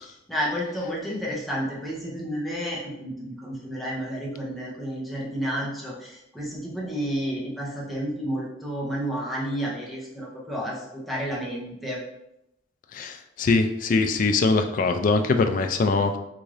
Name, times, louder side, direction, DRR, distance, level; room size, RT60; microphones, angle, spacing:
voice 1, 0.0-12.0, equal, ahead, -5 dB, 0.8 m, -31 dB
voice 2, 12.9-16.2, left 3 dB, 45° left, 7 dB, 0.3 m, -22 dB
3.6 x 2.6 x 3.2 m, 0.85 s
head